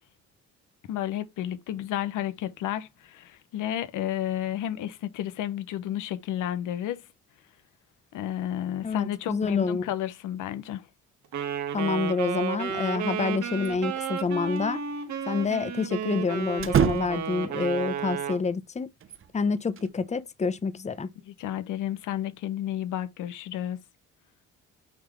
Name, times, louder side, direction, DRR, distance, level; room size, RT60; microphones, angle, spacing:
voice 1, 0.9-7.0 8.1-10.9 21.3-23.8, left 11 dB, 85° left, 0.9 m, -32 dB
voice 2, 8.8-9.9 11.7-14.8 15.3-18.9 19.3-21.1, left 4 dB, 25° left, 0.7 m, -28 dB
Wind instrument woodwind instrument, 11.3-18.4, right 7 dB, 70° right, 1.7 m, -32 dB
sound 1, 13.6-14.3 14.6-14.7 16.6-17.4 19.0-19.9, right 8 dB, 45° right, 0.8 m, -28 dB
8.7 x 3.6 x 3.3 m
cardioid pair, 90°, 30 cm